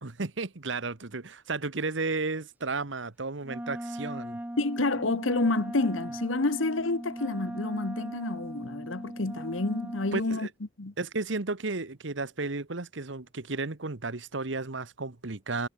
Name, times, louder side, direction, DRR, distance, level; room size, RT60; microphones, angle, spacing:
voice 1, 0.0-4.4 10.1-10.5 11.0-15.7, right 3 dB, 65° right, 1.3 m, -33 dB
Wind instrument woodwind instrument, 3.4-10.3, right 1 dB, 10° right, 0.7 m, -38 dB
voice 2, 4.6-10.5 10.8-10.9, left 2 dB, 80° left, 1.3 m, -29 dB
head